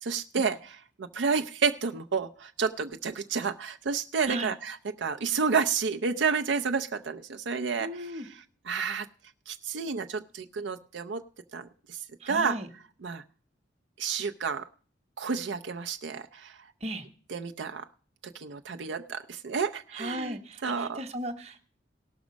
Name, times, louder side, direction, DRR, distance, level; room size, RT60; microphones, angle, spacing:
voice 1, 0.0-9.1 9.5-11.2 11.5-12.0 12.3-12.6 13.0-13.2 14.0-14.7 15.2-16.6 17.3-17.9 18.2-21.0, right 5 dB, 75° right, 6 dB, 0.5 m, -30 dB
voice 2, 7.8-8.3 12.2-12.7 16.8-17.0 19.9-21.6, right 1 dB, 35° right, 7 dB, 1.0 m, -36 dB
18.0 x 6.1 x 5.1 m, 0.43 s
head